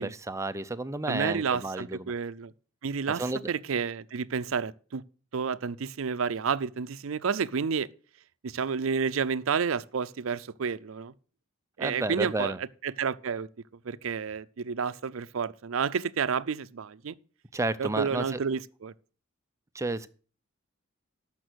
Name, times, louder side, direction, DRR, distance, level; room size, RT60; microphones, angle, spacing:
voice 1, 0.0-2.1 3.2-3.5 11.8-12.6 17.5-18.4 19.7-20.1, right 2 dB, 15° right, 0.5 m, -32 dB
voice 2, 1.1-2.5 2.8-5.0 5.3-7.9 8.4-11.1 11.8-12.5 12.8-13.5 13.8-17.2 17.8-18.9, right 6 dB, 75° right, 0.5 m, -30 dB
12.5 x 5.9 x 6.2 m
head